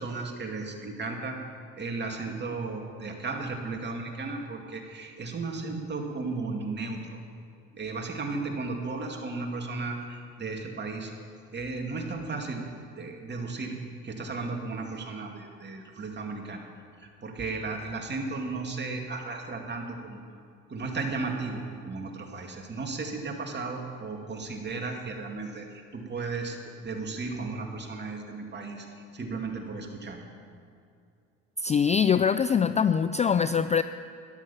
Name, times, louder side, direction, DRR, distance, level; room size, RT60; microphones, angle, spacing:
voice 1, 0.0-1.4 1.8-7.2 7.7-11.1 11.5-12.7 13.0-13.8 14.0-16.6 17.0-20.2 20.7-30.2, right 3 dB, 35° right, 2 dB, 2.5 m, -35 dB
voice 2, 31.6-33.8, left 7 dB, 20° left, 12 dB, 0.3 m, -23 dB
13.0 x 11.0 x 7.1 m, 2.4 s
supercardioid pair, 80°, 32 cm